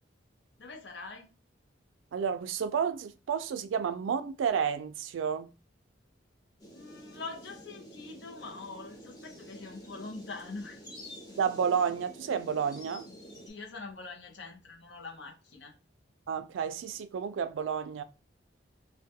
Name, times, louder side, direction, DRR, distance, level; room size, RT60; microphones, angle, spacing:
voice 1, 0.6-1.3 6.7-10.8 13.5-15.7, left 3 dB, 65° left, 0.6 m, -44 dB
voice 2, 2.1-5.5 11.4-13.1 16.3-18.0, right 7 dB, 85° right, 0.3 m, -31 dB
sound 1, 6.6-13.5, equal, 20° left, 0.5 m, -49 dB
2.2 x 2.1 x 2.7 m
head